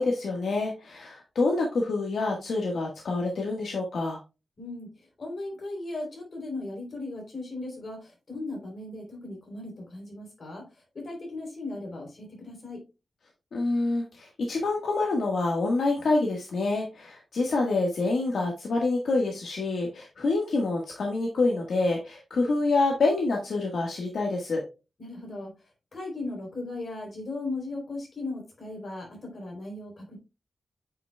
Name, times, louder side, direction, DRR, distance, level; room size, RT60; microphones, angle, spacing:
voice 1, 0.0-4.2 13.5-24.6, left 3 dB, 80° left, 0 dB, 1.5 m, -27 dB
voice 2, 4.6-10.7 10.9-12.8 25.0-25.5 25.9-30.2, left 2 dB, 50° left, 0 dB, 3.5 m, -37 dB
8.6 x 5.9 x 2.3 m, 0.28 s
wide cardioid pair, 140°, 0 cm